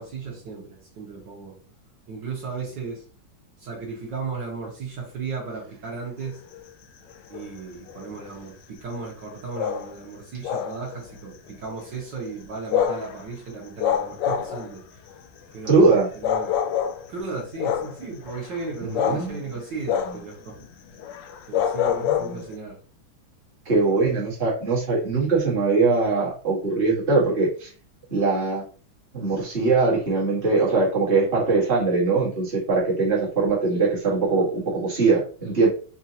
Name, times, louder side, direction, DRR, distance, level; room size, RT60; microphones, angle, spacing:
voice 1, 0.0-1.6 2.1-3.0 3.6-6.4 7.3-15.0 15.5-16.6 17.1-20.6 21.5-22.8 23.7-23.9, right 4 dB, 65° right, -3 dB, 1.7 m, -35 dB
sound 1, 6.3-6.6 7.1-7.5 7.9-8.3 9.6-10.0 10.4-11.2 11.5-11.8 12.6-13.2 13.8-14.8 15.7-15.8 16.2-17.1 17.6-19.4 19.9-20.3 20.6-20.7 21.0-22.6, left 9 dB, 75° left, 1.1 m, -26 dB
voice 2, 15.6-16.1 18.8-19.4 22.0-22.4 23.6-27.7 28.1-28.6 29.1-35.7, right 3 dB, 30° right, -5 dB, 1.7 m, -21 dB
5.2 x 2.5 x 2.8 m, 0.39 s
omnidirectional pair, 2.2 m